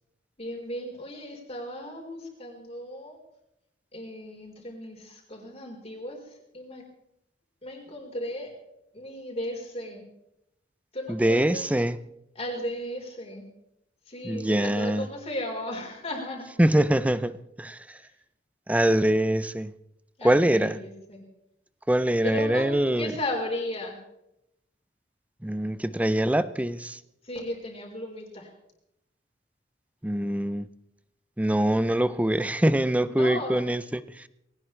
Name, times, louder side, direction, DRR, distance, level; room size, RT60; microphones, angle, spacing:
voice 1, 0.4-3.2 3.9-6.8 7.6-8.5 8.9-10.0 10.9-11.7 12.3-13.4 14.1-16.4 20.2-21.2 22.2-22.7 23.0-24.0 27.2-28.5 33.0-33.6, left 1 dB, 35° left, 1 dB, 4.3 m, -35 dB
voice 2, 11.1-12.0 14.2-15.1 16.6-17.3 17.6-17.8 18.7-19.7 20.2-20.8 21.9-23.1 25.4-27.0 30.0-30.6 31.4-34.0, right 1 dB, 10° right, 15 dB, 0.5 m, -23 dB
20.0 x 18.5 x 3.3 m, 0.82 s
head